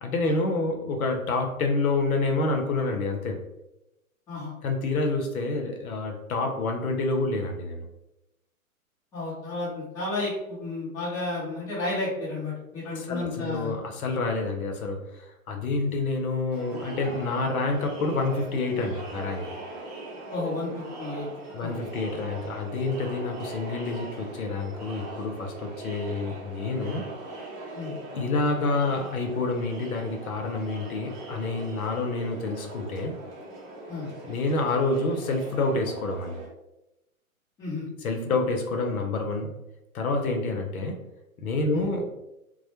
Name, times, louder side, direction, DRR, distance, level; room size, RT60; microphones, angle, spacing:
voice 1, 0.0-3.4 4.6-7.9 12.9-19.5 21.5-27.1 28.1-33.1 34.3-36.4 38.0-39.5 39.9-41.0 41.4-42.1, left 3 dB, 70° left, 3 dB, 0.6 m, -28 dB
voice 2, 9.1-13.7 20.3-21.3 21.6-21.7 27.7-27.9 33.9-34.1 37.6-37.9 41.7-41.9, left 2 dB, 10° left, -9 dB, 0.5 m, -32 dB
Crowd, 16.5-36.5, right 1 dB, 30° right, 0.8 m, -40 dB
2.1 x 2.0 x 2.9 m, 0.91 s
hypercardioid pair, 125°, 44 cm